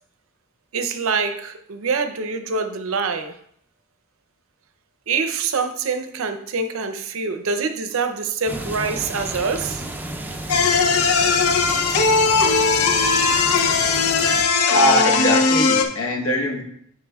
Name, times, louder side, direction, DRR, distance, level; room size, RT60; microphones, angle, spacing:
voice 1, 0.7-3.3 5.1-9.8, right 4 dB, 65° right, 0.6 m, -25 dB
sound 1, 8.5-14.4, right 1 dB, 10° right, 0.4 m, -32 dB
sound 2, 10.5-15.8, left 4 dB, 85° left, 0.6 m, -18 dB
voice 2, 14.7-16.6, equal, 65° left, 1.2 m, -21 dB
9.5 x 4.7 x 2.3 m
head